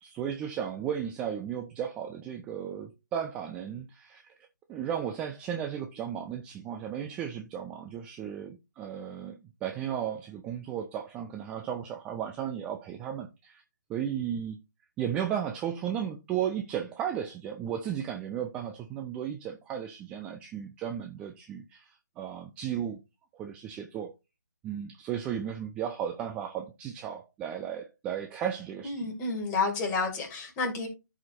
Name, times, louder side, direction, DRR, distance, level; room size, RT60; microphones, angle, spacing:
voice 1, 0.0-4.2 4.7-13.6 13.9-14.6 15.0-21.9 22.2-23.0 23.4-24.1 24.6-29.1, right 9 dB, 10° right, 0.5 m, -35 dB
voice 2, 28.8-30.9, left 3 dB, 15° left, 2.3 m, -30 dB
14.5 x 5.0 x 2.6 m
figure-of-eight pair, 145°, 10 cm